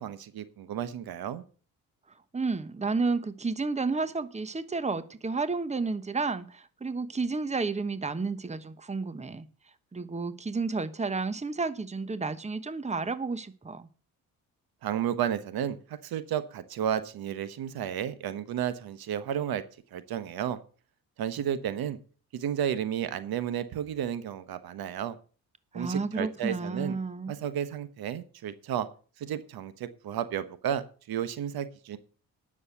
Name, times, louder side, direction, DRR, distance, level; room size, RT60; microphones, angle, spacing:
voice 1, 0.0-1.4 14.8-19.6 19.9-20.6 21.2-22.0 22.3-25.2 25.7-27.0 27.3-28.9 29.2-30.8 31.1-32.0, right 9 dB, 70° right, 13 dB, 1.1 m, -32 dB
voice 2, 2.3-9.5 9.9-13.9 25.7-27.3, right 4 dB, 20° right, 13 dB, 1.1 m, -31 dB
9.9 x 6.7 x 7.9 m, 0.40 s
supercardioid pair, 70°, 37 cm